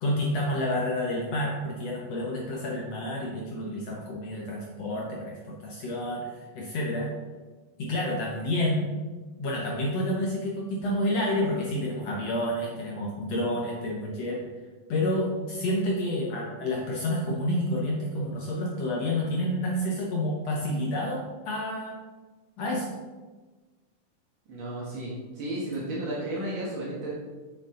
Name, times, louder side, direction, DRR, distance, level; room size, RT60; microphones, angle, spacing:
voice 1, 0.0-6.3 6.5-7.1 7.8-8.9 9.4-14.4 14.9-22.0 22.6-22.9, left 1 dB, 75° left, -3 dB, 1.5 m, -29 dB
voice 2, 24.5-27.1, right 1 dB, 55° right, -6 dB, 1.4 m, -33 dB
8.3 x 6.4 x 3.8 m, 1.3 s
omnidirectional pair, 4.3 m